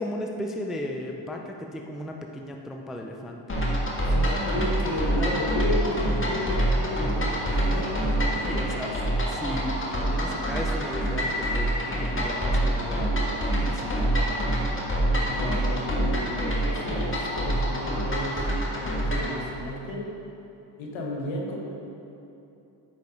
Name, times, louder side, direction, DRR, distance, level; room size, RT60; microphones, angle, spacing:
voice 1, 0.0-3.6 8.5-8.9 9.3-13.1 13.6-14.2, left 1 dB, ahead, 2 dB, 0.4 m, -35 dB
sound 1, 3.5-19.4, right 1 dB, 25° left, 1.6 m, -26 dB
voice 2, 4.0-8.7 15.2-18.4 18.7-20.1 20.8-21.6, left 2 dB, 70° left, -1 dB, 1.7 m, -33 dB
sound 2, 4.5-11.6, equal, 20° right, 1.8 m, -45 dB
9.2 x 5.3 x 5.4 m, 2.8 s
cardioid pair, 120°, 48 cm